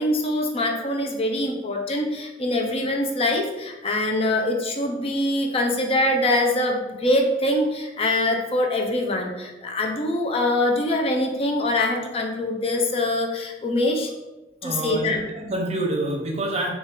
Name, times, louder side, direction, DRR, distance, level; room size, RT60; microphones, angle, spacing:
voice 1, 0.0-14.1 14.6-15.2, left 1 dB, 35° left, 2 dB, 0.4 m, -24 dB
voice 2, 14.6-16.7, right 1 dB, 40° right, 1 dB, 0.7 m, -27 dB
4.1 x 2.4 x 3.7 m, 1.0 s
head